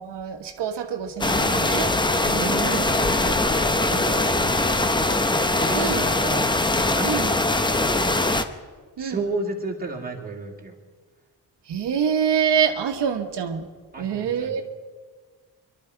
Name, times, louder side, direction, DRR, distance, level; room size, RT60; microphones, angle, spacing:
voice 1, 0.0-1.9 2.2-2.8 5.7-6.1 7.0-7.3 9.0-9.2 11.7-13.7 14.0-14.6, right 7 dB, 90° right, 4 dB, 1.3 m, -26 dB
sound 1, 1.2-8.4, left 2 dB, 10° left, 0.6 m, -22 dB
voice 2, 2.3-5.2 5.4-6.5 6.9-8.1 9.0-10.7 13.9-14.6, right 3 dB, 20° right, -1 dB, 2.3 m, -33 dB
25.5 x 12.0 x 4.6 m, 1.5 s
wide cardioid pair, 160°, 41 cm